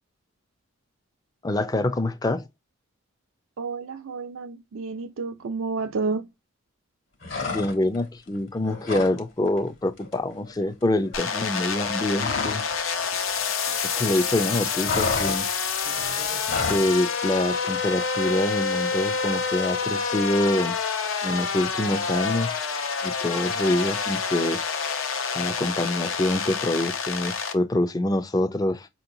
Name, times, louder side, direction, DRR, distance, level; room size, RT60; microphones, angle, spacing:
voice 1, 1.4-2.5 7.4-12.6 14.0-15.5 16.7-20.8 21.2-22.6 23.0-24.6 25.3-28.9, left 1 dB, 20° left, 0.4 m, -25 dB
voice 2, 3.6-6.2, right 4 dB, 80° right, 0.4 m, -30 dB
sound 1, 7.2-8.0 8.3-9.2 9.5-9.7 10.0-12.7 13.0-14.1 14.3-16.9, left 4 dB, 65° left, 1.2 m, -31 dB
sound 2, 11.1-27.5, left 5 dB, 85° left, 0.7 m, -28 dB
5.2 x 2.8 x 2.6 m
head